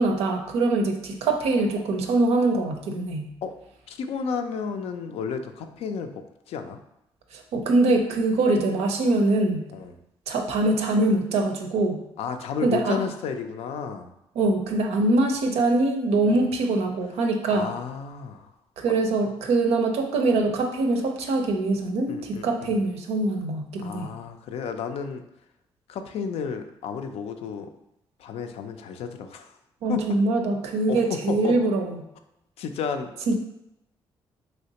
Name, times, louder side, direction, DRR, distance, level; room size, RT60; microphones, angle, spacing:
voice 1, 0.0-3.3 7.3-9.6 10.3-12.0 12.6-13.0 14.4-17.7 18.8-24.1 29.8-32.0 33.3-33.4, right 2 dB, 80° right, 4 dB, 0.5 m, -23 dB
voice 2, 3.9-6.8 9.7-10.0 12.2-14.1 16.3-16.5 17.5-18.5 22.1-22.7 23.8-25.2 25.9-27.7 28.2-29.5 29.9-30.0 30.9-31.6 32.6-33.3, left 6 dB, 75° left, 7 dB, 0.4 m, -32 dB
3.2 x 2.8 x 2.8 m, 0.84 s
supercardioid pair, 60°, 10 cm